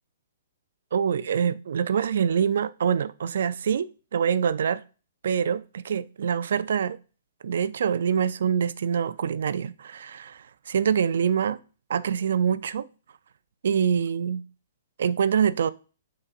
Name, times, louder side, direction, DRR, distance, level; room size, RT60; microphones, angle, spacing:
voice 1, 0.9-4.8 5.2-7.0 7.4-11.6 11.9-12.9 13.6-14.4 15.0-15.7, right 7 dB, 65° right, 0.3 m, -25 dB
5.3 x 3.7 x 2.5 m
hypercardioid pair, 170°, 0 cm